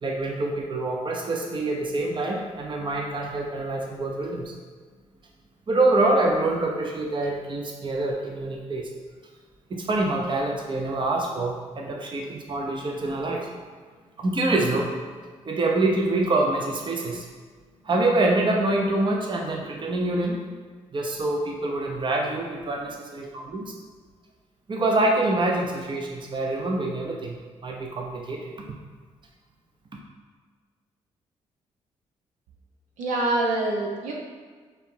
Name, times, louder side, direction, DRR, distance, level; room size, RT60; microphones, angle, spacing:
voice 1, 0.0-4.5 5.7-8.9 9.7-13.5 14.2-15.0 15.5-17.3 17.8-20.4 20.9-23.7 24.7-28.5, right 2 dB, 40° right, 0 dB, 0.7 m, -25 dB
voice 2, 33.0-34.1, right 2 dB, 80° right, -2 dB, 0.7 m, -25 dB
3.3 x 2.8 x 4.6 m, 1.6 s
supercardioid pair, 55°, 13 cm